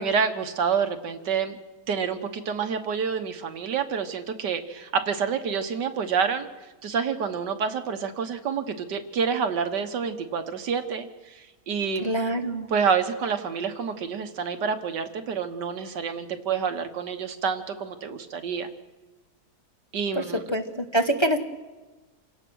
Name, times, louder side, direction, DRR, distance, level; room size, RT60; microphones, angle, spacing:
voice 1, 0.0-1.6 1.9-6.5 6.8-12.1 12.7-18.7 19.9-20.4, right 6 dB, 80° right, 8 dB, 1.9 m, -28 dB
voice 2, 12.0-12.7 20.1-20.2 20.5-21.4, right 1 dB, 20° left, 5 dB, 1.0 m, -25 dB
27.5 x 17.0 x 6.3 m, 1.2 s
omnidirectional pair, 1.8 m